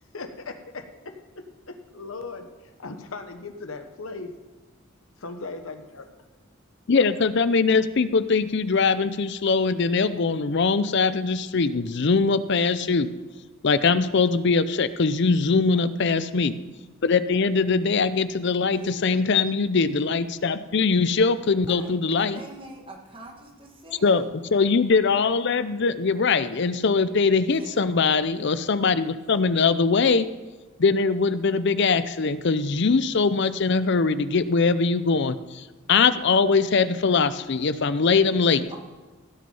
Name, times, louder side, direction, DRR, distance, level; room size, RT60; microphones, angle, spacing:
voice 1, 0.1-0.9 1.7-4.3 5.2-6.3, left 3 dB, 80° left, 7 dB, 1.2 m, -38 dB
voice 2, 6.9-13.1 13.6-16.5 17.0-22.4 24.0-24.2 24.5-30.3 30.8-38.7, left 4 dB, 55° left, 13 dB, 0.6 m, -22 dB
voice 3, 18.7-19.2 21.7-24.3 27.5-27.8 29.3-29.5 38.5-38.8, right 1 dB, 25° right, 1 dB, 1.8 m, -44 dB
16.5 x 6.4 x 5.4 m, 1.3 s
head